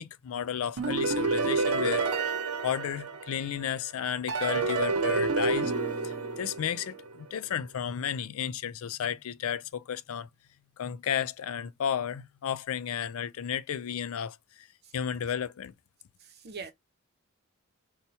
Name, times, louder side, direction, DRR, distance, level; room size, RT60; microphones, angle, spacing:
voice 1, 0.0-2.3 2.6-5.7 6.0-10.3 10.8-14.7 14.9-15.7, left 8 dB, 70° left, 0.4 m, -33 dB
sound 1, 0.8-3.6 4.3-7.1, right 4 dB, 90° right, 0.9 m, -29 dB
voice 2, 16.2-16.7, right 4 dB, 50° right, 0.8 m, -42 dB
4.2 x 2.3 x 2.7 m
head